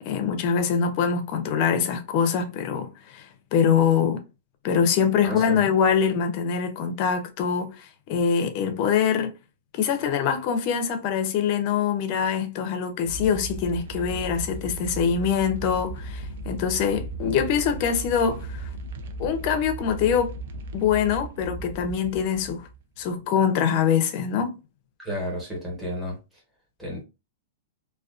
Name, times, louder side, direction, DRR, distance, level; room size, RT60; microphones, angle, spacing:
voice 1, 0.0-3.3 3.5-4.2 4.6-9.3 9.7-18.7 19.2-20.3 20.7-22.7 23.0-24.6, left 7 dB, 40° left, 0.5 m, -24 dB
voice 2, 5.2-5.7 25.0-26.2 26.8-27.0, equal, 5° right, 1.1 m, -32 dB
sound 1, 13.0-23.1, right 2 dB, 60° right, 0.4 m, -36 dB
2.4 x 2.2 x 2.4 m
supercardioid pair, 160°, 0 cm